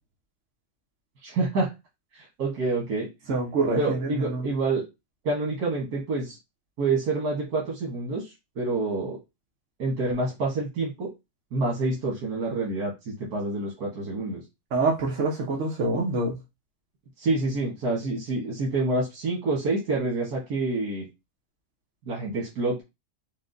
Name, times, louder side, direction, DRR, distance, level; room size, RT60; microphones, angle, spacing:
voice 1, 1.2-1.7 2.1-3.1 3.8-4.8 5.2-6.4 6.8-9.2 9.8-11.1 11.5-14.4 17.2-21.1 22.1-22.8, right 3 dB, 80° right, 1.8 m, -27 dB
voice 2, 3.3-4.4 14.7-16.4, right 3 dB, 55° right, 1.1 m, -26 dB
5.2 x 2.2 x 3.8 m
omnidirectional pair, 1.6 m